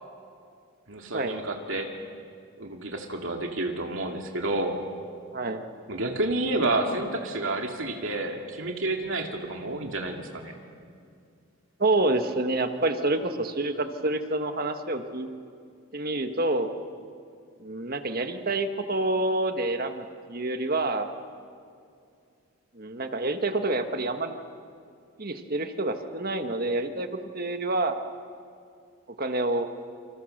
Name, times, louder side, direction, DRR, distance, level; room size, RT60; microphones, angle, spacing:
voice 1, 0.9-1.9 2.6-4.8 5.9-10.5, right 2 dB, 65° right, 2 dB, 2.4 m, -30 dB
voice 2, 5.3-5.6 11.8-15.3 15.9-16.7 17.6-21.1 22.7-24.3 25.2-27.1 27.3-27.9 29.2-29.7, right 2 dB, 40° right, 7 dB, 1.5 m, -27 dB
29.0 x 27.0 x 6.6 m, 2.3 s
head